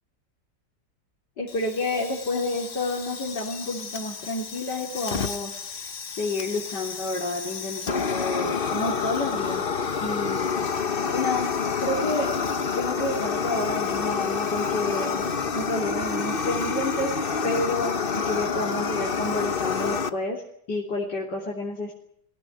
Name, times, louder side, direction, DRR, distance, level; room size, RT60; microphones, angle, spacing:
voice 1, 1.4-5.9 6.2-9.7 10.0-10.7 11.1-12.3 12.8-15.3 15.5-20.4 20.7-21.9, left 2 dB, 85° left, -2 dB, 4.1 m, -30 dB
Fire, 1.5-20.1, left 5 dB, 35° left, 1.1 m, -29 dB
22.5 x 16.5 x 9.6 m, 0.70 s
omnidirectional pair, 1.8 m